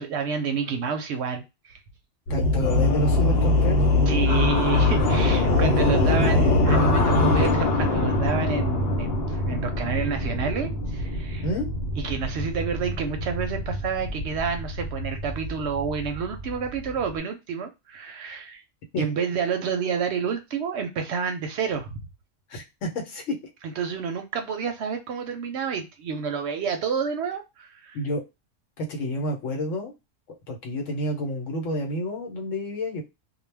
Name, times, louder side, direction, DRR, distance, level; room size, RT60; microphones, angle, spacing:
voice 1, 0.0-1.4 4.1-11.4 12.0-18.6 19.0-22.0 23.8-28.0, right 6 dB, 65° right, 0.7 m, -29 dB
voice 2, 2.3-3.9 5.9-6.4 11.4-11.7 18.9-19.1 22.5-23.4 27.9-28.2 28.8-29.9 30.5-33.0, left 1 dB, 75° left, 1.1 m, -29 dB
sound 1, 2.3-17.2, left 2 dB, 60° left, 0.8 m, -23 dB
2.3 x 2.1 x 3.2 m
omnidirectional pair, 1.3 m